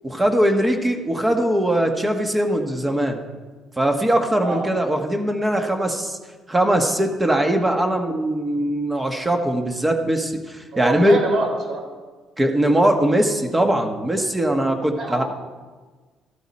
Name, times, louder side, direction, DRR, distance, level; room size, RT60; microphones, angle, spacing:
voice 1, 0.0-3.2 3.8-6.2 6.5-11.2 12.4-15.2, right 1 dB, 15° right, 4 dB, 1.4 m, -21 dB
voice 2, 10.7-11.8 14.9-15.2, right 3 dB, 60° right, 1 dB, 3.9 m, -25 dB
13.5 x 12.5 x 4.3 m, 1.4 s
cardioid pair, 115°, 0 cm